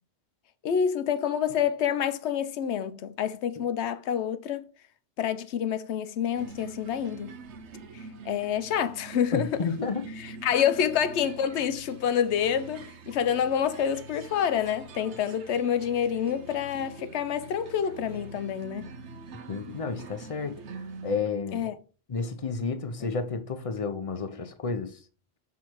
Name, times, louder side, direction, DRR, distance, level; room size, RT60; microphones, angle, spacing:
voice 1, 0.6-4.6 5.2-7.4 7.9-9.7 10.2-18.9 21.5-21.7, left 8 dB, 80° left, 0.9 m, -28 dB
sound 1, 6.4-21.2, right 4 dB, 85° right, 1.0 m, -45 dB
voice 2, 9.3-10.0 19.5-20.6 21.0-21.7 22.1-25.0, left 4 dB, 40° left, 0.6 m, -31 dB
6.1 x 3.6 x 4.5 m
omnidirectional pair, 1.1 m